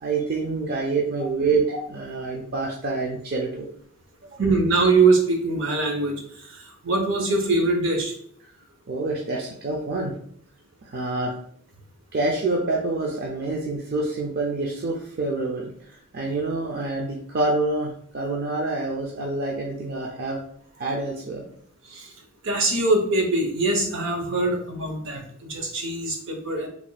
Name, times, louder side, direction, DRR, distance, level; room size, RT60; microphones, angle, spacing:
voice 1, 0.0-3.7 4.3-4.4 8.9-10.1 10.8-11.3 12.1-20.4 20.8-21.4, right 3 dB, 50° right, -1 dB, 0.5 m, -27 dB
voice 2, 4.4-6.2 6.5-8.1 21.9-22.0 22.4-26.7, right 3 dB, 70° right, 3 dB, 0.8 m, -23 dB
3.5 x 2.2 x 4.0 m, 0.63 s
head